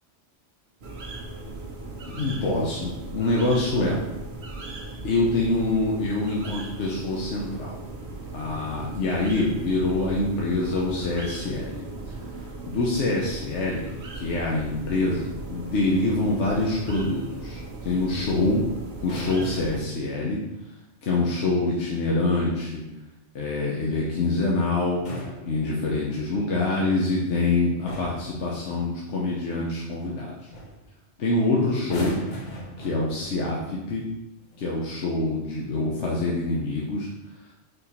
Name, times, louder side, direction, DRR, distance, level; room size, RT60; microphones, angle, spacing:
sound 1, 0.8-19.8, right 2 dB, 60° right, 1.1 m, -38 dB
voice 1, 2.2-4.0 5.0-7.8 8.3-11.8 12.7-18.6 19.0-20.4 21.0-22.8 23.3-25.0 25.5-30.3 31.2-32.2 32.8-34.0 34.6-37.1, left 2 dB, 75° left, -4 dB, 1.2 m, -25 dB
sound 2, 19.0-20.0 22.0-22.7 24.8-26.2 27.2-27.5 27.9-28.3 30.0-30.2 30.5-30.8 31.8-33.5 34.4-34.6, left 1 dB, 40° left, 1.0 m, -38 dB
5.0 x 4.5 x 4.3 m, 0.94 s
omnidirectional pair, 1.2 m